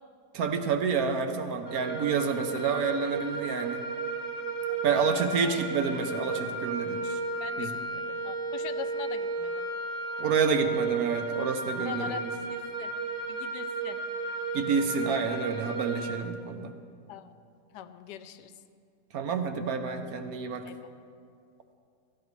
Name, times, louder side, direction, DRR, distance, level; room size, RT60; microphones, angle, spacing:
voice 1, 0.3-3.8 4.8-7.2 7.6-7.7 10.2-12.3 14.5-16.7 19.1-20.7, right 5 dB, 65° right, 7 dB, 1.1 m, -29 dB
sound 1, 1.7-16.1, right 4 dB, 45° right, 1.2 m, -33 dB
voice 2, 4.7-5.6 7.4-9.7 11.8-12.9 13.3-14.0 17.1-17.3 17.7-18.5 20.6-20.8, left 9 dB, 85° left, 11 dB, 1.2 m, -42 dB
17.0 x 13.0 x 3.2 m, 2.2 s
omnidirectional pair, 1.8 m